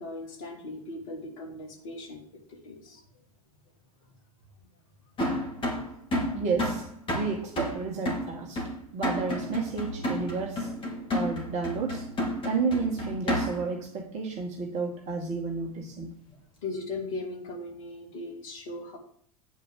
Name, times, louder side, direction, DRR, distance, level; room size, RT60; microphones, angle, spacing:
voice 1, 0.0-2.2 2.5-3.0 16.3-16.4 16.6-19.0, left 2 dB, 60° left, 3 dB, 2.9 m, -38 dB
sound 1, 5.2-13.8, left 1 dB, 25° left, 3.6 m, -31 dB
voice 2, 6.3-6.9 7.1-8.6 8.9-10.7 11.1-12.1 12.4-16.1, right 4 dB, 35° right, 0 dB, 2.1 m, -31 dB
9.3 x 5.1 x 7.7 m, 0.63 s
figure-of-eight pair, 80°, 19 cm